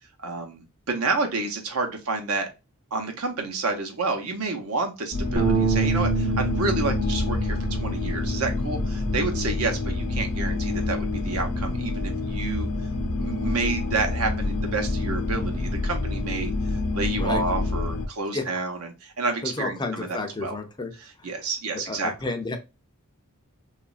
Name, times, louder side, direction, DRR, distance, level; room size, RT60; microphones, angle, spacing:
voice 1, 0.2-2.5 2.9-12.7 13.2-16.5 16.9-20.6 21.2-22.1, right 3 dB, 70° right, 0.8 m, -29 dB
sound 1, 5.1-18.1, left 2 dB, 80° left, 0.7 m, -27 dB
Bass guitar, 5.4-11.6, right 4 dB, 30° right, 0.6 m, -29 dB
voice 2, 19.4-20.9 21.2-21.3 21.7-22.6, left 3 dB, 20° left, 0.4 m, -31 dB
3.0 x 2.4 x 2.3 m
head